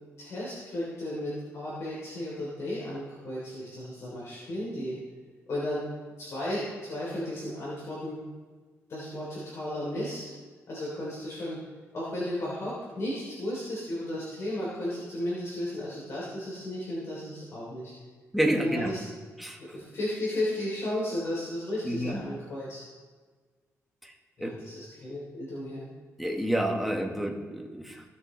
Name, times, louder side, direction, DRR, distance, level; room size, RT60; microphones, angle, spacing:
voice 1, 0.2-4.9 5.5-5.8 6.2-8.2 8.9-10.3 10.7-11.6 11.9-17.9 18.5-19.0 19.6-22.8 24.4-25.8, left 1 dB, 55° left, -7 dB, 3.4 m, -34 dB
voice 2, 18.3-18.9 19.4-19.6 21.8-22.2 24.0-24.1 24.4-24.5 26.2-28.0, right 1 dB, ahead, 0 dB, 1.6 m, -29 dB
17.0 x 6.5 x 3.3 m, 1.4 s
cardioid pair, 105°, 6 cm